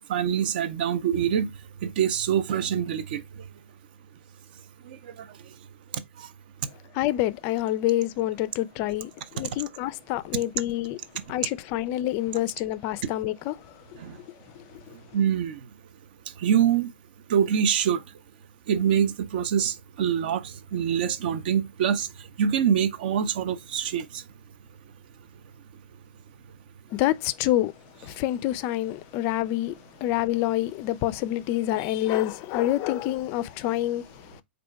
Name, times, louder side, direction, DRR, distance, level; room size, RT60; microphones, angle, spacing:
voice 1, 0.1-1.5 1.8-3.2 4.9-5.0 5.9-6.3 14.0-14.2 15.1-15.6 16.4-16.9 17.3-18.0 18.7-22.1 22.4-24.2, right 8 dB, 50° right, 0.6 m, -25 dB
voice 2, 6.9-11.0 11.3-13.5 27.0-27.7 28.0-29.7 30.0-34.0, left 14 dB, 35° left, 0.4 m, -27 dB
4.3 x 2.6 x 4.4 m
figure-of-eight pair, 105°, 7 cm